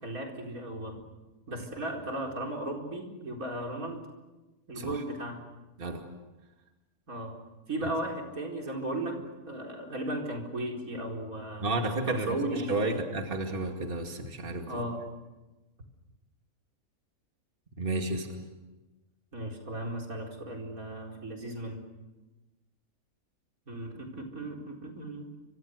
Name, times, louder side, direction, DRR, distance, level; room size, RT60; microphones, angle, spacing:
voice 1, 0.0-1.0 1.5-4.1 4.7-5.5 7.1-7.4 7.7-11.7 12.0-13.0 14.7-15.0 19.3-21.8 23.7-25.3, right 1 dB, 90° right, 1 dB, 4.8 m, -36 dB
voice 2, 11.6-14.8 17.8-18.3, right 2 dB, 40° right, 3 dB, 2.6 m, -32 dB
29.5 x 25.5 x 6.6 m, 1.1 s
omnidirectional pair, 1.4 m